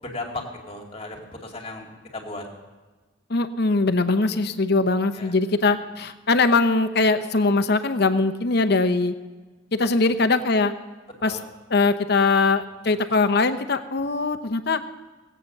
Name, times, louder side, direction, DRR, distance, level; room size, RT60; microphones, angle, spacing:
voice 1, 0.0-1.9 2.1-2.4 5.1-5.3 11.2-11.5, left 2 dB, 30° left, 1 dB, 2.3 m, -35 dB
voice 2, 3.3-9.1 9.7-10.7 11.2-11.4 11.7-14.8, left 3 dB, 60° left, 10 dB, 0.8 m, -21 dB
18.5 x 8.4 x 6.7 m, 1.3 s
head